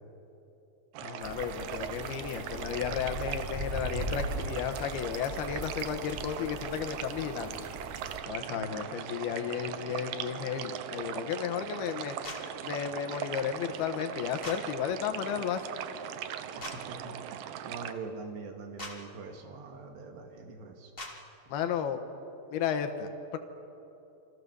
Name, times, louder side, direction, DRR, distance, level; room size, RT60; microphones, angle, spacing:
sound 1, 0.9-17.9, right 9 dB, 90° right, 2.0 m, -40 dB
voice 1, 1.0-7.7 8.3-12.2 12.6-15.6 21.5-22.0 22.5-23.4, left 8 dB, 70° left, 7 dB, 2.8 m, -33 dB
sound 2, 1.2-8.2, right 1 dB, 5° right, 1.5 m, -40 dB
voice 2, 8.5-8.9 16.9-20.9, right 4 dB, 70° right, 3 dB, 3.8 m, -43 dB
sound 3, 12.2-12.4 14.4-14.6 16.6-16.8 18.8-18.9 21.0-21.1, left 2 dB, 20° left, 1.5 m, -39 dB
28.5 x 24.5 x 6.9 m, 2.9 s
omnidirectional pair, 5.5 m